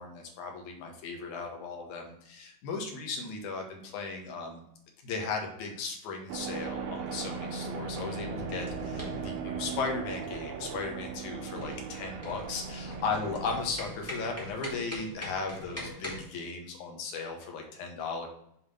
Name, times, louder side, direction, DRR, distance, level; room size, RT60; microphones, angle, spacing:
voice 1, 0.0-4.6 5.0-18.3, left 4 dB, 75° left, 2 dB, 2.5 m, -36 dB
sound 1, 6.3-14.9, right 5 dB, 80° right, 2.1 m, -38 dB
sound 2, 8.2-16.2, left 1 dB, 10° left, 0.7 m, -43 dB
7.1 x 3.1 x 5.4 m, 0.73 s
omnidirectional pair, 3.5 m